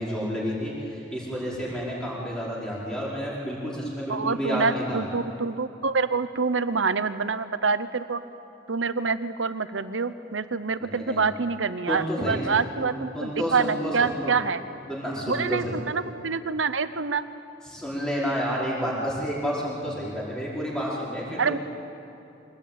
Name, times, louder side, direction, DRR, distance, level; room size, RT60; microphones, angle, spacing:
voice 1, 0.0-5.0 10.9-11.2 11.9-12.4 12.8-14.3 14.9-15.7 17.7-21.6, equal, 5° left, -6 dB, 4.8 m, -30 dB
voice 2, 4.1-8.2 8.7-14.6 15.3-17.3 21.4-21.6, right 5 dB, 90° right, 13 dB, 0.9 m, -26 dB
24.0 x 18.5 x 8.9 m, 2.7 s
head